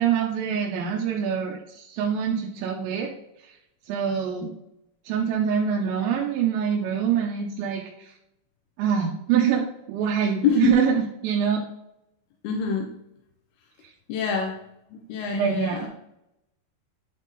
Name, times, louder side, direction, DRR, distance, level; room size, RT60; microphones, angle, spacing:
voice 1, 0.0-3.1 3.9-4.5 5.0-8.1 8.8-11.6 15.3-15.9, right 7 dB, 85° right, -2 dB, 3.1 m, -25 dB
voice 2, 10.4-10.8 12.4-12.9 14.1-14.6 14.9-15.9, left 6 dB, 75° left, 1 dB, 2.5 m, -25 dB
11.0 x 3.7 x 4.0 m, 0.83 s
omnidirectional pair, 5.1 m